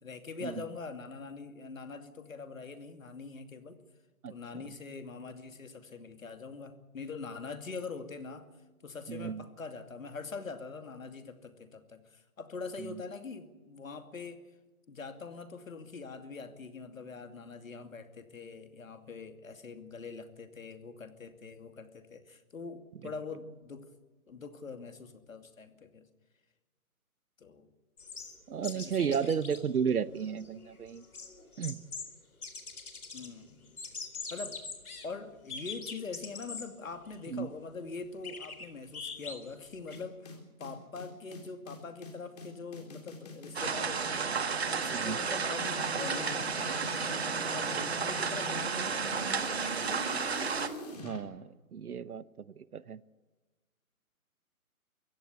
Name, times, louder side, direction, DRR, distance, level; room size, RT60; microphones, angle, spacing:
voice 1, 0.0-3.8 4.3-8.5 8.8-14.4 14.9-23.9 24.3-26.1 27.4-27.7 28.6-29.3 33.1-33.7 34.3-34.6 35.0-44.4 44.7-47.2 47.5-49.7, left 4 dB, 65° left, 8 dB, 2.6 m, -43 dB
voice 2, 4.2-4.7 9.1-9.4 12.8-13.0 28.5-31.0 31.6-31.8 37.3-37.5 44.9-45.2 51.0-53.0, right 7 dB, 85° right, 17 dB, 1.0 m, -34 dB
sound 1, 28.0-29.6 29.9-30.0 30.2-32.1 32.4-33.3 33.7-35.1 35.5-36.7 37.1-37.2 38.2-40.0, left 4 dB, 85° left, 4.2 m, -43 dB
sound 2, 39.9-51.2, left 2 dB, 25° left, 3.8 m, -44 dB
sound 3, 43.5-50.7, right 5 dB, 45° right, 1.5 m, -32 dB
24.0 x 16.5 x 8.2 m, 1.2 s
hypercardioid pair, 180°, 43 cm